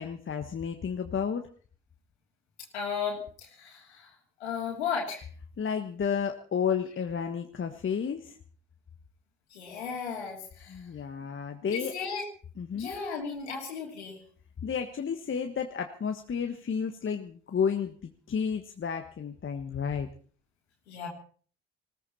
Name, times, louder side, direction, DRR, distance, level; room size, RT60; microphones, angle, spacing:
voice 1, 0.0-1.5 5.6-8.4 10.7-11.9 12.6-12.9 14.6-20.1, left 7 dB, 40° left, 5 dB, 1.5 m, -32 dB
voice 2, 2.7-4.1 4.4-5.3 9.5-10.8 11.7-12.3 12.7-14.2 20.9-21.1, left 6 dB, 90° left, -1 dB, 3.0 m, -35 dB
20.0 x 16.0 x 4.3 m, 0.43 s
hypercardioid pair, 50°, 32 cm